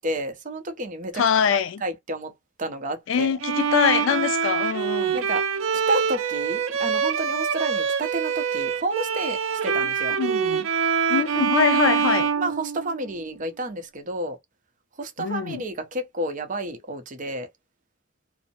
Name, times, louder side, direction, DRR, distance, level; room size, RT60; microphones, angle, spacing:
voice 1, 0.0-1.2 1.5-2.3 2.6-3.4 5.1-5.5 5.9-9.4 9.6-10.2 11.6-11.9 12.4-14.4 15.0-17.5, right 1 dB, 40° right, 0.6 m, -30 dB
voice 2, 1.1-1.8 3.1-5.2 10.2-10.7 11.1-12.3 15.2-15.6, left 7 dB, 70° left, 0.3 m, -23 dB
Bowed string instrument, 3.4-13.2, right 6 dB, 85° right, 0.4 m, -25 dB
2.6 x 2.0 x 2.8 m
head